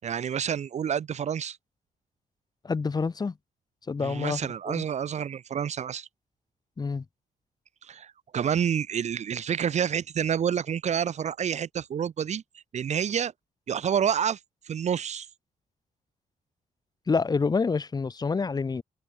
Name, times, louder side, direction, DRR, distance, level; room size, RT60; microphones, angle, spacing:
voice 1, 0.0-1.6 4.0-6.1 7.8-12.4 12.7-13.3 13.7-14.4 14.7-15.3, right 8 dB, 55° right, 4.0 m, -28 dB
voice 2, 2.6-3.3 3.9-4.4 4.7-4.9 6.8-7.0 17.1-18.8, left 4 dB, 30° left, 7.4 m, -27 dB
open air
wide cardioid pair, 145°, 14 cm